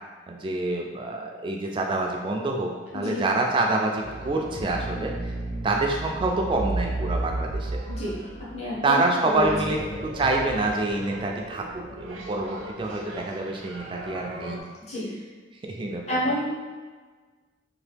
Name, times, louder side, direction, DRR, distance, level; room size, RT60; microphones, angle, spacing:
voice 1, 0.3-5.1 5.6-7.8 8.8-14.6 15.7-16.2, right 2 dB, 25° right, 1 dB, 0.3 m, -27 dB
voice 2, 2.9-3.2 7.9-8.2 8.5-9.8 14.9-15.1 16.1-16.5, equal, 35° left, -7 dB, 0.9 m, -29 dB
sound 1, 2.9-14.6, right 2 dB, 85° right, 0.5 m, -35 dB
2.9 x 2.3 x 3.3 m, 1.4 s
head